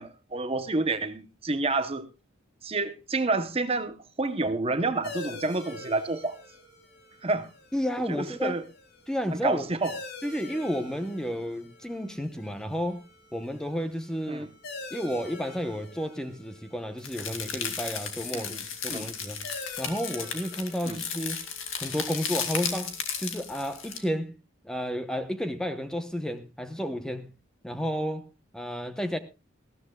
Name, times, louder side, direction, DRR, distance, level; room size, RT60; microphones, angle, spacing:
voice 1, 0.0-2.1 2.6-6.4 7.2-7.5 8.1-8.6 9.4-9.9 14.3-14.5 18.3-18.4 18.9-19.1 20.9-21.0, right 3 dB, 30° right, 0.9 m, -29 dB
sound 1, 5.0-24.2, left 2 dB, 55° left, 2.4 m, -47 dB
voice 2, 7.7-8.6 9.1-9.6 10.2-13.0 13.3-14.5 14.9-18.6 18.8-19.4 19.8-21.4 21.8-24.3 24.6-27.3 27.6-28.3 28.5-29.2, equal, 5° left, 0.9 m, -31 dB
sound 2, 17.0-24.0, left 7 dB, 85° left, 2.3 m, -35 dB
19.5 x 15.0 x 2.3 m
head